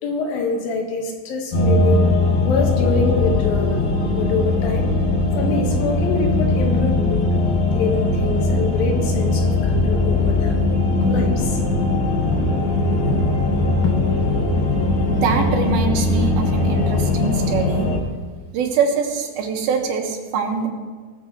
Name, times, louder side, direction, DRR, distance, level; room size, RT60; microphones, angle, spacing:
voice 1, 0.0-2.1 2.4-3.8 4.1-4.9 5.4-7.3 7.7-10.5 11.0-11.9 12.3-12.4 13.0-13.2 13.8-14.0, left 3 dB, 75° left, 2 dB, 3.3 m, -25 dB
sound 1, 1.5-18.0, left 2 dB, 55° left, 2.8 m, -20 dB
voice 2, 15.1-17.9 18.5-20.7, right 6 dB, 85° right, 2 dB, 3.4 m, -23 dB
18.5 x 14.0 x 3.2 m, 1.4 s
omnidirectional pair, 4.2 m